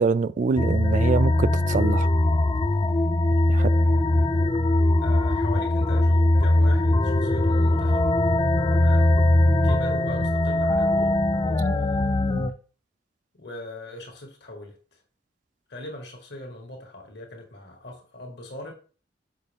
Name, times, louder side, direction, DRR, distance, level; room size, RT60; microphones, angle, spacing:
voice 1, 0.0-2.1 3.5-3.7, right 4 dB, 45° right, 0.3 m, -24 dB
sound 1, 0.6-12.5, left 1 dB, 25° left, 0.4 m, -21 dB
voice 2, 5.0-8.1 8.7-12.4 13.3-14.8 15.7-18.7, left 2 dB, 65° left, 1.9 m, -40 dB
6.6 x 5.4 x 3.5 m
head